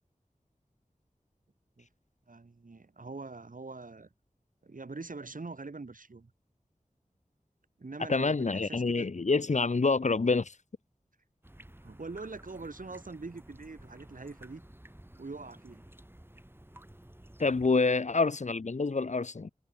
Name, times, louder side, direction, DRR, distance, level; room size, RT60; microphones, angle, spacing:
voice 1, 2.3-4.1 4.6-6.3 7.8-9.1 11.8-14.6 15.2-15.8, right 3 dB, 80° right, 6.0 m, -43 dB
voice 2, 8.1-10.5 17.4-19.5, left 3 dB, 60° left, 0.9 m, -27 dB
sound 1, 11.4-17.7, right 1 dB, 15° right, 4.7 m, -53 dB
wide cardioid pair, 55°, 14 cm